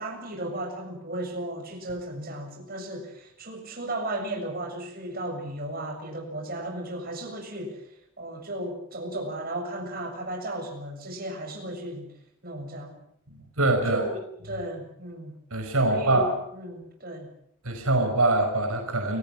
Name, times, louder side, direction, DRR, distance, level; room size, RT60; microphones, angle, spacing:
voice 1, 0.0-7.8 8.2-12.1 12.4-13.0 13.9-14.2 14.4-15.3 15.8-17.3, right 1 dB, 45° right, 3 dB, 7.1 m, -35 dB
voice 2, 13.3-14.0 15.5-16.3 17.6-19.2, right 2 dB, 75° right, 4 dB, 5.5 m, -24 dB
30.0 x 18.5 x 7.4 m, 0.73 s
head